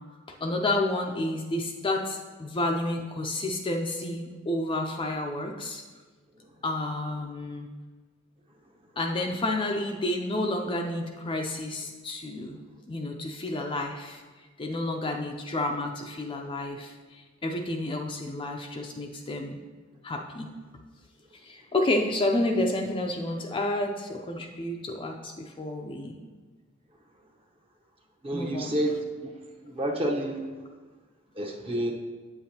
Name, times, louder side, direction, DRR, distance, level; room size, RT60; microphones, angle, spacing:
voice 1, 0.3-5.8 6.6-7.7 9.0-14.2 14.6-19.6 20.0-20.5 21.4-26.2 28.3-28.8, left 1 dB, 25° left, 2 dB, 0.4 m, -30 dB
voice 2, 28.2-29.3 29.7-30.5 31.3-31.9, right 1 dB, 30° right, 1 dB, 0.9 m, -29 dB
8.3 x 7.7 x 2.8 m, 1.4 s
head